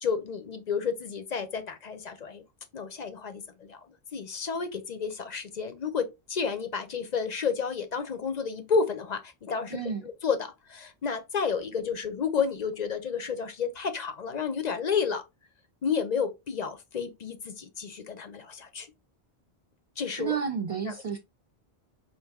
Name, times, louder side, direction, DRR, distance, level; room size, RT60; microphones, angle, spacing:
voice 1, 0.0-2.4 2.7-3.8 4.1-15.2 15.8-18.9 20.0-20.4 20.9-21.0, left 6 dB, 50° left, 0.7 m, -31 dB
voice 2, 9.7-10.1 20.2-21.2, right 6 dB, 50° right, 0.4 m, -31 dB
4.6 x 2.6 x 3.4 m
omnidirectional pair, 1.0 m